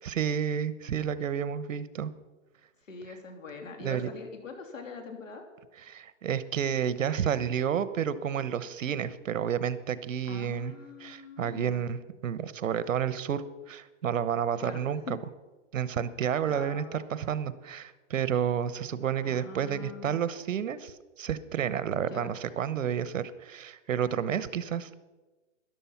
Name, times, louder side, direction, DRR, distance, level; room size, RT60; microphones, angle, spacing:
voice 1, 0.0-2.1 3.8-4.1 5.9-10.7 11.0-15.2 15.7-24.9, right 8 dB, 85° right, 15 dB, 1.0 m, -30 dB
voice 2, 2.9-5.5 10.2-11.8 14.6-15.1 16.5-17.1 19.1-20.2 21.9-22.3, left 5 dB, 90° left, 5 dB, 3.0 m, -43 dB
13.0 x 11.0 x 5.8 m, 1.2 s
hypercardioid pair, 170°, 38 cm